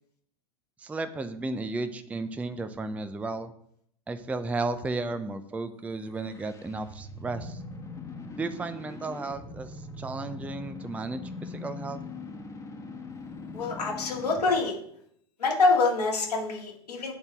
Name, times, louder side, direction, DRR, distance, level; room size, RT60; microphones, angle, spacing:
voice 1, 0.8-3.5 4.1-7.6 8.4-12.0, right 3 dB, 5° right, 10 dB, 0.4 m, -34 dB
sound 1, 6.0-14.6, left 3 dB, 15° left, 1.2 m, -41 dB
voice 2, 13.5-14.8 15.4-17.1, left 3 dB, 85° left, -2 dB, 2.2 m, -25 dB
9.0 x 4.0 x 3.5 m, 0.67 s
hypercardioid pair, 95°, 20 cm